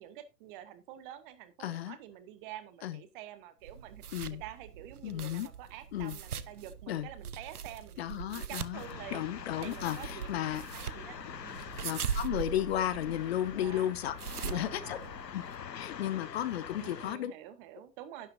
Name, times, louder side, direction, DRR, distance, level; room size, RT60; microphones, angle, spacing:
voice 1, 0.0-9.2 9.6-11.7 13.6-13.9 14.4-15.1 16.8-18.3, right 11 dB, 30° right, 1.5 m, -48 dB
voice 2, 1.6-2.0 2.8-3.0 4.1-4.4 5.0-5.5 5.9-6.2 6.9-7.1 8.0-8.8 9.1-10.6 11.8-14.1 14.4-15.0 15.3-15.4 15.7-17.3, left 12 dB, 40° left, 1.0 m, -34 dB
sound 1, 3.6-15.6, right 8 dB, 65° right, 1.0 m, -41 dB
sound 2, 8.7-17.1, left 8 dB, 80° left, 0.7 m, -45 dB
11.5 x 10.5 x 2.6 m
figure-of-eight pair, 110°, 48 cm